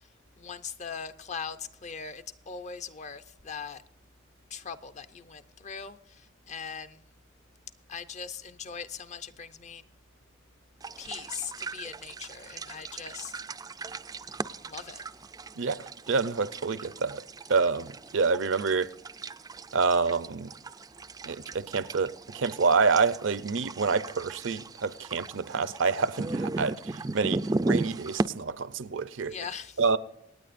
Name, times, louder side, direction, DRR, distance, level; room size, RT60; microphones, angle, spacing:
voice 1, 0.4-3.8 4.5-7.0 7.9-9.8 11.0-13.3 14.6-15.0 29.2-29.8, left 6 dB, 40° left, 0.6 m, -40 dB
sound 1, 10.8-28.3, right 2 dB, 20° right, 0.4 m, -37 dB
voice 2, 15.6-17.2 17.5-18.9 19.7-20.5 21.3-29.3 29.8-30.0, right 4 dB, 75° right, 0.6 m, -27 dB
26.0 x 9.4 x 2.5 m
head